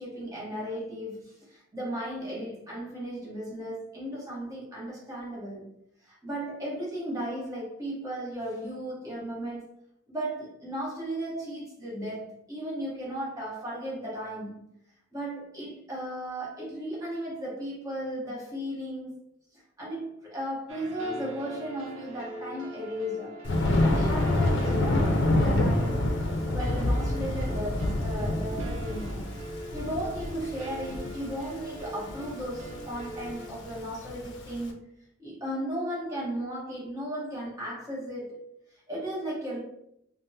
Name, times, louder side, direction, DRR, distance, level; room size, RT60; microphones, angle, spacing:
voice 1, 0.0-5.6 6.0-9.7 10.1-14.7 15.1-19.1 19.5-23.4 23.8-26.1 26.5-29.3 29.7-34.8 35.2-38.4 38.7-39.6, right 1 dB, 15° right, -6 dB, 0.9 m, -35 dB
sound 1, 20.7-33.5, equal, 90° right, 0.5 m, -43 dB
Thunder, 23.4-34.6, left 1 dB, 60° left, 0.5 m, -27 dB
3.4 x 2.0 x 2.7 m, 0.77 s
head